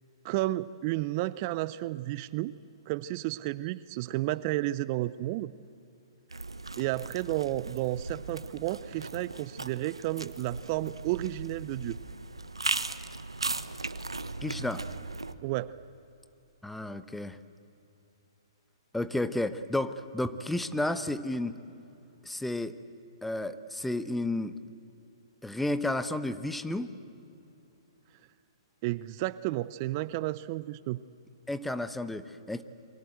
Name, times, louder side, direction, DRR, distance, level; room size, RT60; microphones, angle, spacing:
voice 1, 0.2-2.5 2.9-5.5 6.8-12.0 15.4-15.8 28.8-31.0, right 17 dB, 40° right, 18 dB, 0.6 m, -32 dB
sound 1, 6.3-15.3, right 3 dB, 90° right, 1.1 m, -37 dB
voice 2, 14.4-14.8 16.6-17.4 18.9-21.5 22.2-22.8 23.2-24.6 25.4-26.9 31.5-32.6, left 1 dB, 5° left, 11 dB, 1.0 m, -32 dB
29.0 x 24.0 x 7.9 m, 2.8 s
figure-of-eight pair, 120°, 3 cm